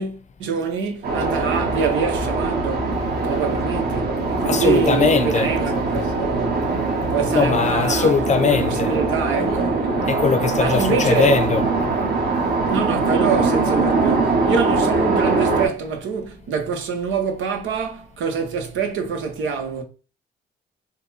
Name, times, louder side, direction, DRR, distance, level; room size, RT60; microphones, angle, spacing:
voice 1, 0.0-2.9 3.2-6.7 7.1-8.1 8.4-9.9 10.6-11.3 12.7-19.8, right 5 dB, 80° right, 1.0 m, -25 dB
sound 1, 1.0-15.7, right 3 dB, 55° right, 1.4 m, -22 dB
voice 2, 4.4-5.6 7.3-9.0 10.1-11.7, left 5 dB, 35° left, 0.6 m, -20 dB
4.0 x 2.2 x 4.0 m
cardioid pair, 90°, 20 cm